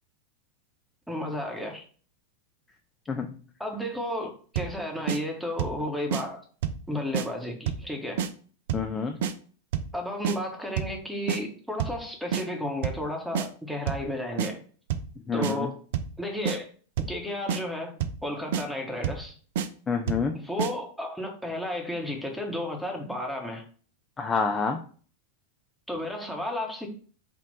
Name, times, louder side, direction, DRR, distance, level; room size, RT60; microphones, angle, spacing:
voice 1, 1.1-1.8 3.6-6.4 6.9-8.2 9.9-14.6 15.3-15.8 16.2-16.7 17.1-19.3 20.4-23.6 25.9-26.9, left 1 dB, ahead, 1 dB, 1.0 m, -33 dB
sound 1, 4.6-4.8 5.1-5.2 5.6-5.8 6.1-6.2 6.6-6.9 7.1-7.3 7.7-7.9 8.2-8.3 8.7-8.9 9.2-9.3 9.7-10.0 10.2-10.4 10.8-11.0 11.3-11.4 11.8-12.0 12.3-12.4 12.8-13.1 13.4-13.5 13.9-14.1 14.4-14.5 14.9-15.1 15.4-15.5 15.9-16.2 16.5-16.6 17.0-17.2 17.5-17.6 18.0-18.2 18.5-18.7 19.0-19.3 19.6-19.7 20.1-20.3 20.6-20.7, right 8 dB, 55° right, 0.4 m, -28 dB
voice 2, 8.7-9.2 15.3-15.7 19.9-20.3 24.2-24.8, left 5 dB, 20° left, 4 dB, 0.4 m, -28 dB
3.6 x 2.4 x 4.0 m, 0.42 s
figure-of-eight pair, 90°, 0 cm